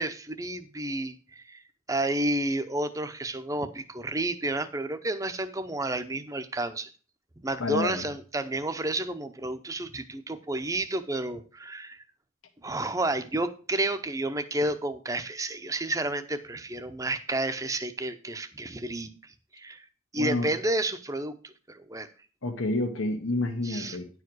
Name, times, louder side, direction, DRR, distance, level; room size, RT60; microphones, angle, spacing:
voice 1, 0.0-1.6 1.9-6.9 7.4-12.0 12.6-19.9 20.1-22.1 23.6-24.0, right 2 dB, 15° right, 10 dB, 0.7 m, -31 dB
voice 2, 7.6-8.0 20.2-20.5 22.4-24.1, left 2 dB, 85° left, 6 dB, 1.3 m, -29 dB
10.5 x 4.8 x 6.2 m, 0.38 s
head